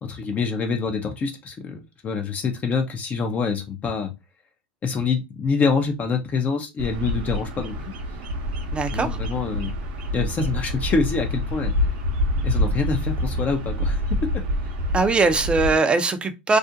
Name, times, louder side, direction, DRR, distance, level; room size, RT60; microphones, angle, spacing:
voice 1, 0.0-4.1 4.8-7.8 8.9-9.7 10.1-11.7 12.4-14.4, left 5 dB, 30° left, 0.5 m, -26 dB
Bird vocalization bird call bird song, 6.8-15.8, left 1 dB, 70° right, 0.7 m, -26 dB
voice 2, 8.7-9.1 14.9-16.6, right 3 dB, 20° right, 0.5 m, -20 dB
2.4 x 2.1 x 2.6 m
hypercardioid pair, 100°, 5 cm